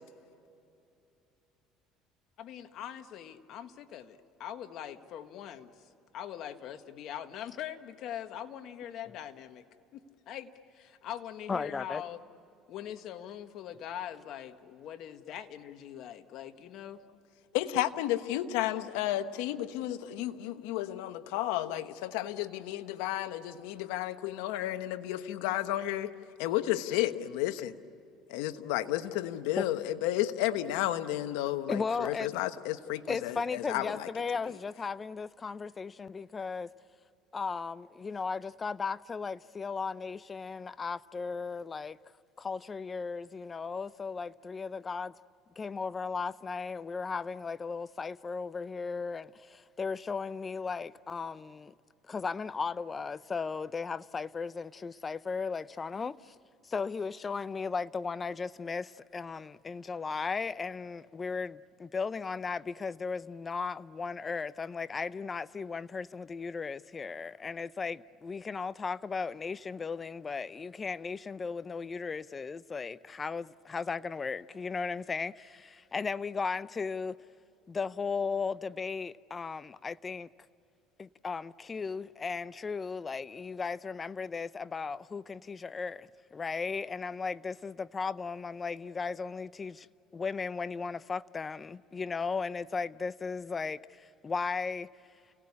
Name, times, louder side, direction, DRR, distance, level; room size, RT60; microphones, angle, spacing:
voice 1, 2.4-9.6 9.9-12.2 12.7-17.0, left 10 dB, 60° left, 1.6 m, -42 dB
voice 2, 11.5-12.0 29.6-29.7 31.7-32.3 33.1-36.7 37.3-42.0 42.4-45.1 45.6-51.7 52.1-56.4 56.6-77.2 77.7-80.3 81.0-89.9 90.1-94.9, left 5 dB, 25° left, 0.6 m, -36 dB
voice 3, 17.5-26.1 26.4-27.7 28.3-34.1, left 14 dB, 85° left, 1.1 m, -32 dB
30.0 x 18.5 x 9.8 m
supercardioid pair, 105°, 0 cm